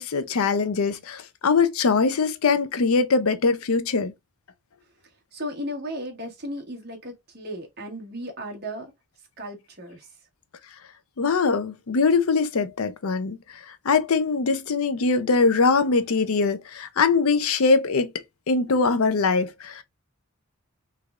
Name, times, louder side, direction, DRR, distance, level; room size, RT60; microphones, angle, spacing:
voice 1, 0.0-4.1 11.2-18.1 18.5-19.8, left 4 dB, 75° left, 0.5 m, -22 dB
voice 2, 5.3-8.9 9.4-10.1, equal, 45° right, 1.3 m, -35 dB
3.4 x 3.2 x 2.4 m
head